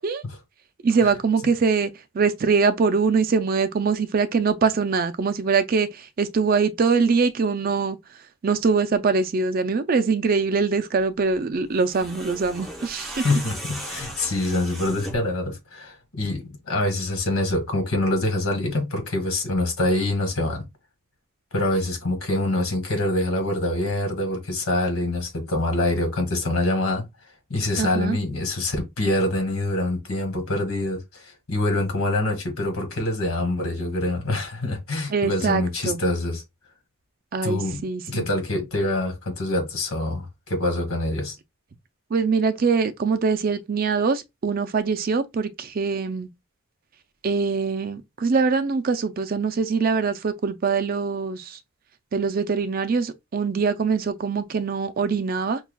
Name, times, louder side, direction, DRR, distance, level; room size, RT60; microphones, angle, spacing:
voice 1, 0.8-1.9 2.2-5.9 6.2-8.0 8.4-13.2 27.8-28.2 35.1-36.0 37.3-38.3 42.1-46.3 47.2-51.6 52.1-55.6, right 5 dB, 40° right, 0.4 m, -23 dB
sound 1, 11.7-15.4, right 1 dB, ahead, 0.8 m, -37 dB
voice 2, 13.2-20.7 21.5-27.1 27.5-36.4 37.4-41.4, left 1 dB, 75° left, 1.6 m, -25 dB
5.6 x 2.3 x 2.2 m
head